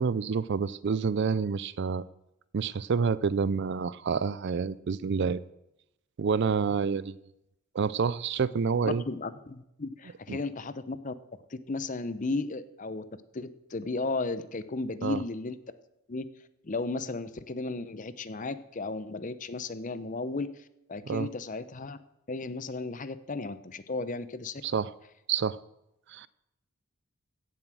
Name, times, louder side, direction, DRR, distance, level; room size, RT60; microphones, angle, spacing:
voice 1, 0.0-2.0 2.5-5.4 6.2-7.2 7.7-9.0 10.3-10.4 15.0-15.2 21.1-21.3 24.6-24.9 25.3-25.6 26.1-26.3, right 5 dB, 50° right, 18 dB, 0.4 m, -28 dB
voice 2, 8.8-11.1 11.5-13.1 13.3-15.8 16.1-16.3 16.6-22.0 22.3-24.6, left 3 dB, 35° left, 14 dB, 0.6 m, -35 dB
16.0 x 7.5 x 6.2 m, 0.87 s
head